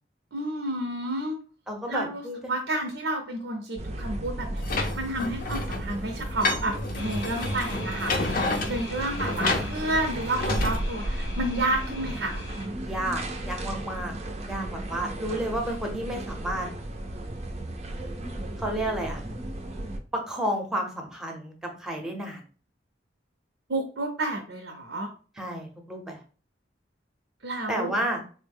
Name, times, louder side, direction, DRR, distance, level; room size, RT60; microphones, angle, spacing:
voice 1, 0.3-1.3 1.9-2.2 2.5-12.4 23.7-25.1 27.4-27.9, right 1 dB, 85° right, 2 dB, 0.6 m, -30 dB
voice 2, 1.7-2.4 12.8-14.1 14.5-16.7 18.6-19.2 20.1-22.4 25.4-26.2 27.7-28.2, right 1 dB, 5° right, 1 dB, 0.7 m, -31 dB
sound 1, 3.8-20.0, right 1 dB, 35° right, 0.4 m, -35 dB
sound 2, 4.6-10.8, left 2 dB, 50° left, 0.5 m, -30 dB
sound 3, 6.9-12.7, left 3 dB, 80° left, 0.8 m, -41 dB
3.9 x 2.1 x 3.4 m, 0.39 s
head